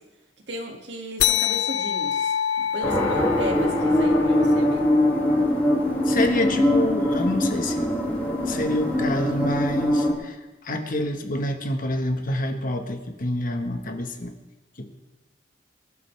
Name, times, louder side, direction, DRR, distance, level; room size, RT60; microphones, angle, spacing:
voice 1, 0.5-4.8, right 1 dB, 70° right, 1 dB, 2.4 m, -35 dB
sound 1, 1.2-6.1, left 9 dB, 75° left, 0.6 m, -27 dB
sound 2, 2.8-10.1, left 1 dB, 10° left, 3.8 m, -22 dB
voice 2, 6.0-8.0 8.5-10.4 10.6-14.3 14.8-15.1, left 1 dB, 50° left, 5 dB, 1.5 m, -27 dB
24.0 x 12.0 x 3.5 m, 1.1 s
head